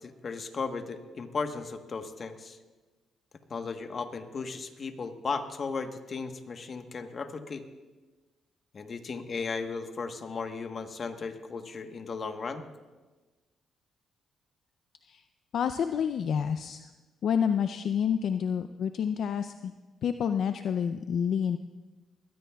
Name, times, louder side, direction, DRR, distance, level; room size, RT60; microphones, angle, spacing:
voice 1, 0.0-2.6 3.5-7.6 8.7-12.6, left 4 dB, 45° left, 7 dB, 1.2 m, -36 dB
voice 2, 15.5-16.8 17.2-19.7 20.0-21.6, left 7 dB, 65° left, 9 dB, 0.5 m, -28 dB
21.5 x 15.5 x 2.3 m, 1.2 s
cardioid pair, 90°, 0 cm